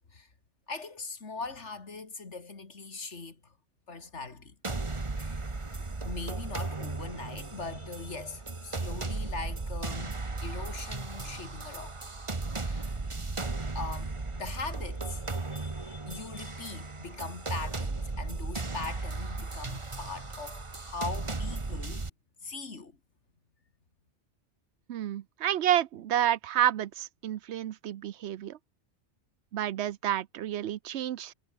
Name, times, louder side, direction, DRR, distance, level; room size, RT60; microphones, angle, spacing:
voice 1, 0.7-3.5 3.9-4.6 5.2-5.4 6.0-12.0 12.6-13.0 13.7-22.1 22.4-23.0, left 4 dB, 80° left, 2.8 m, -41 dB
sound 1, 4.6-22.1, right 3 dB, 25° right, 1.4 m, -36 dB
voice 2, 24.9-28.6 29.5-31.3, right 11 dB, 75° right, 0.9 m, -29 dB
omnidirectional pair, 1.2 m